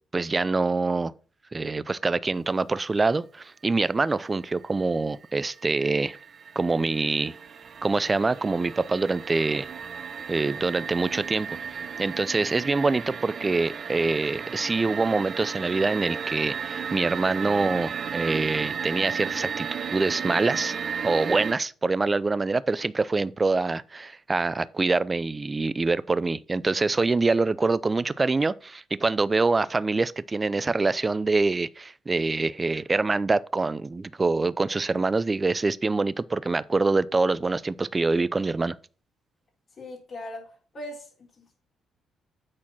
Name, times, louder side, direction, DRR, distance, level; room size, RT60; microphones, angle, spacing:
voice 1, 0.1-1.1 1.5-6.2 6.6-7.3 7.8-9.7 10.3-11.6 12.0-19.7 19.9-20.8 21.0-38.8, right 3 dB, 25° right, 0.5 m, -25 dB
sound 1, 4.8-4.9 5.2-21.5, right 6 dB, 50° right, 0.9 m, -34 dB
voice 2, 39.8-40.5 40.7-41.1 41.4-41.6, left 1 dB, 50° left, 3.6 m, -39 dB
8.8 x 4.3 x 5.6 m
cardioid pair, 90°, 0 cm